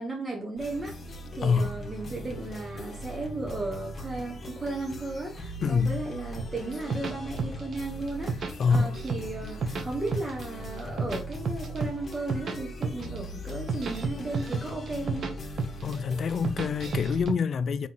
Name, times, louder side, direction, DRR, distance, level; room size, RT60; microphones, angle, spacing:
voice 1, 0.0-15.4, right 2 dB, 20° right, 1.1 m, -35 dB
sound 1, 0.6-17.2, equal, 35° left, 1.3 m, -40 dB
voice 2, 1.4-1.8 5.6-6.0 8.6-9.0 15.8-17.9, left 5 dB, 55° left, 0.5 m, -26 dB
sound 2, 6.4-7.8 8.1-9.2 9.5-10.4 10.8-12.6 12.8-13.2 13.5-15.3 15.6-16.0 16.3-17.4, right 4 dB, 55° right, 0.8 m, -31 dB
4.0 x 3.0 x 3.9 m
cardioid pair, 90°, 0 cm